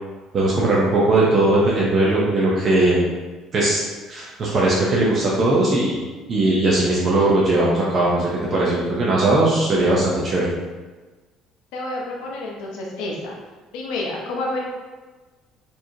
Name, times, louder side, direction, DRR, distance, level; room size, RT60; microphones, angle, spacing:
voice 1, 0.3-3.0 3.5-3.8 4.1-6.0 6.3-10.5, right 2 dB, 30° right, -5 dB, 0.5 m, -19 dB
voice 2, 11.7-13.3 13.7-14.6, left 2 dB, 85° left, -2 dB, 0.8 m, -29 dB
4.5 x 3.0 x 2.6 m, 1.3 s
cardioid pair, 180°, 0 cm